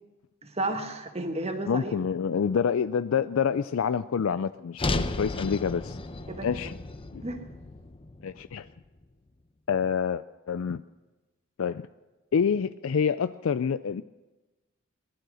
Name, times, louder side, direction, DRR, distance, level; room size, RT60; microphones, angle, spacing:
voice 1, 0.4-1.9 6.3-6.6 7.2-7.4, right 2 dB, 30° right, 6 dB, 1.6 m, -32 dB
voice 2, 1.7-6.0 6.4-6.7 7.1-7.2 8.2-8.7 9.7-10.8 11.6-11.9 12.3-14.0, left 6 dB, 70° left, 13 dB, 0.4 m, -27 dB
sound 1, 4.8-9.0, left 2 dB, 25° left, 0.8 m, -34 dB
19.0 x 12.0 x 6.3 m, 1.1 s
head